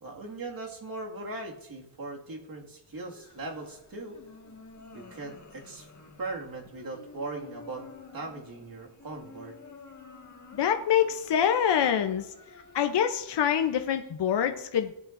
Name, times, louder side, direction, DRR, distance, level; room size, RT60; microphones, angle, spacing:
voice 1, 0.0-4.2 4.9-5.9 6.2-7.9 8.1-9.5, right 2 dB, 45° right, 0 dB, 2.1 m, -39 dB
sound 1, 2.9-14.1, left 4 dB, 35° left, 1.8 m, -51 dB
voice 2, 10.5-12.3 12.7-14.9, left 9 dB, 55° left, 6 dB, 0.8 m, -25 dB
17.5 x 8.8 x 2.6 m, 0.83 s
wide cardioid pair, 110°, 49 cm